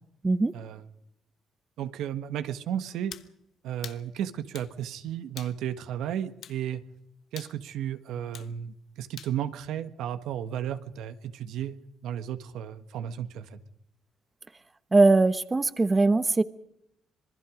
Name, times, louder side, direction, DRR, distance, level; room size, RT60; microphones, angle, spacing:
voice 1, 0.5-0.8 1.8-3.1 3.6-6.8 7.3-11.8 12.0-13.6, right 10 dB, 85° right, 10 dB, 1.5 m, -34 dB
sound 1, 3.1-3.3 3.8-4.0 4.5-4.7 5.4-5.6 6.4-6.6 7.4-7.6 8.3-8.5 9.2-9.4, left 9 dB, 70° left, 1.2 m, -43 dB
voice 2, 14.9-16.4, right 3 dB, 25° right, 13 dB, 1.1 m, -21 dB
26.5 x 21.0 x 5.1 m, 0.81 s
cardioid pair, 90°, 0 cm